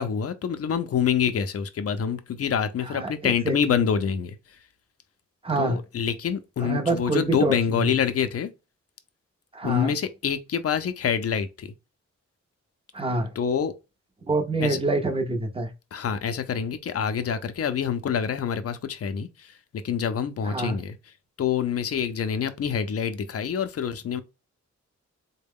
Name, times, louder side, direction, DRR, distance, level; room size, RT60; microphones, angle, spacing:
voice 1, 0.0-4.6 5.6-8.5 9.6-11.7 13.4-13.7 14.6-14.8 15.9-24.2, left 7 dB, 55° left, 0.5 m, -26 dB
voice 2, 2.9-3.5 5.4-5.8 6.6-7.8 9.5-9.9 12.9-13.3 14.3-15.7 20.5-20.8, right 2 dB, 20° right, 0.6 m, -26 dB
3.9 x 2.1 x 3.5 m
wide cardioid pair, 175°, 29 cm